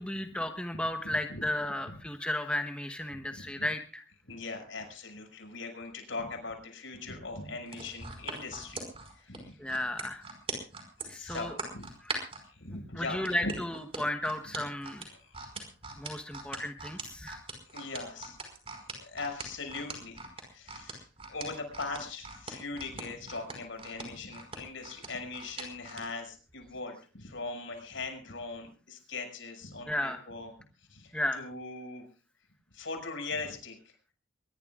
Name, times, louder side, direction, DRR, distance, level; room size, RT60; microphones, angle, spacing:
voice 1, 0.0-4.0 9.6-10.2 11.1-11.6 12.0-12.2 13.0-15.1 16.0-17.4 29.9-30.2 31.1-31.4, left 1 dB, 5° left, 5 dB, 1.0 m, -34 dB
voice 2, 3.3-3.6 4.3-8.9 9.1-9.6 11.0-11.9 12.4-13.5 15.1-15.6 17.7-18.4 19.0-30.5 30.9-32.0 32.7-34.1, left 3 dB, 85° left, 4 dB, 6.2 m, -40 dB
sound 1, 7.7-12.4 13.3-26.1 26.5-26.7, right 4 dB, 30° right, 5.0 m, -41 dB
23.5 x 21.0 x 2.4 m, 0.38 s
head